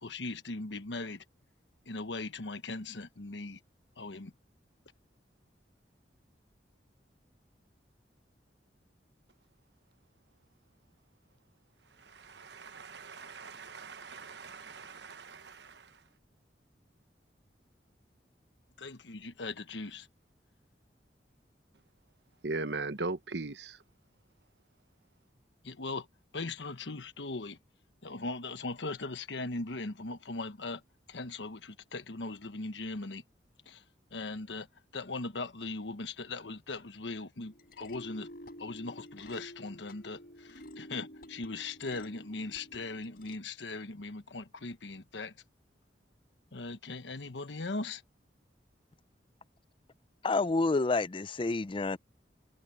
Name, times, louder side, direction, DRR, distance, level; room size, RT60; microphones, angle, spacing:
voice 1, 0.0-1.2 1.9-3.6 4.0-4.3 18.8-20.1 25.6-26.1 26.3-27.6 28.0-30.8 31.1-33.2 33.7-33.8 34.1-34.7 34.9-38.3 38.6-45.3 46.5-48.0, left 3 dB, 80° left, 1.2 m, -39 dB
voice 2, 12.0-16.0 22.4-23.8, right 3 dB, 70° right, 1.2 m, -40 dB
sound 1, 37.4-43.4, equal, 55° left, 7.6 m, -50 dB
voice 3, 50.2-52.0, left 3 dB, 30° left, 0.5 m, -29 dB
head